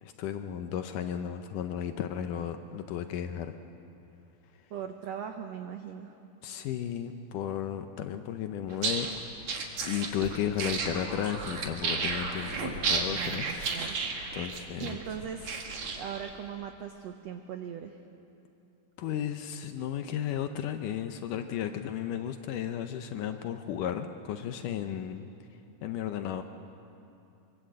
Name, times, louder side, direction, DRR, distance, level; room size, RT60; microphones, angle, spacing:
voice 1, 0.0-3.6 6.4-9.1 9.8-14.0 14.3-15.0 19.0-25.3 25.8-26.4, left 9 dB, 75° left, 7 dB, 2.1 m, -34 dB
voice 2, 4.7-6.1 13.1-14.0 14.8-15.6 16.0-18.0, right 8 dB, 85° right, 6 dB, 1.4 m, -39 dB
sound 1, 8.7-16.3, right 4 dB, 55° right, 2.8 m, -33 dB
24.5 x 24.0 x 7.7 m, 2.8 s
omnidirectional pair, 4.3 m